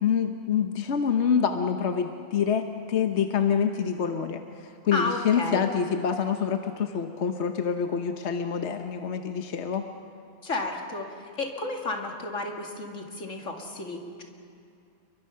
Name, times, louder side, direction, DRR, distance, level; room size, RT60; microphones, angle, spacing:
voice 1, 0.0-9.9, left 7 dB, 65° left, 6 dB, 1.2 m, -26 dB
voice 2, 4.9-5.7 10.4-14.2, left 2 dB, 90° left, 1 dB, 2.6 m, -32 dB
28.5 x 22.5 x 5.7 m, 2.5 s
omnidirectional pair, 1.3 m